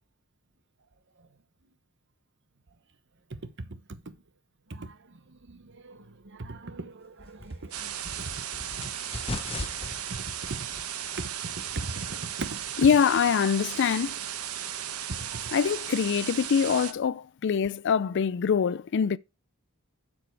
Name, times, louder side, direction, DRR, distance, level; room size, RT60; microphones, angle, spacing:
voice 1, 3.3-4.1 4.7-5.0 5.5-8.3 8.8-8.9 10.1-10.2 10.5-10.7 11.2-12.6 15.1-15.5, right 2 dB, 55° right, 1.0 m, -39 dB
sound 1, 7.2-13.3, left 2 dB, 25° left, 1.0 m, -41 dB
sound 2, 7.7-16.9, right 10 dB, 85° right, 1.0 m, -36 dB
voice 2, 12.8-14.2 15.5-19.2, left 7 dB, 55° left, 0.4 m, -24 dB
7.6 x 7.2 x 4.6 m
head